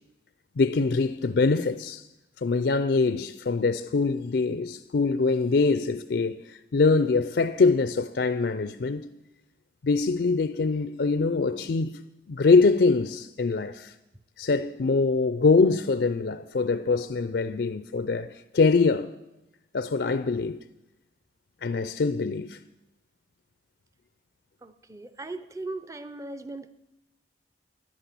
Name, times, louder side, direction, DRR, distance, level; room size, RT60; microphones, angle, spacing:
voice 1, 0.6-2.0 2.4-9.1 9.8-12.0 12.3-13.9 14.4-19.1 19.7-20.6 21.6-22.6, left 4 dB, 65° left, 0.4 m, -24 dB
voice 2, 24.6-26.7, right 2 dB, 15° right, 0.6 m, -38 dB
11.0 x 10.0 x 8.3 m
head